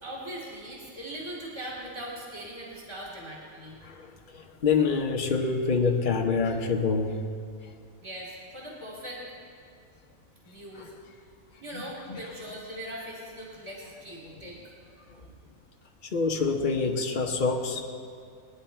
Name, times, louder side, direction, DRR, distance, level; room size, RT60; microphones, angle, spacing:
voice 1, 0.0-3.8 8.0-9.2 10.4-10.9 11.6-14.7, right 1 dB, 20° right, -5 dB, 2.5 m, -40 dB
voice 2, 3.8-7.2 10.8-10.9 11.7-12.2 16.1-17.8, left 4 dB, 40° left, 2 dB, 1.1 m, -26 dB
20.5 x 10.5 x 4.5 m, 2.3 s
omnidirectional pair, 1.5 m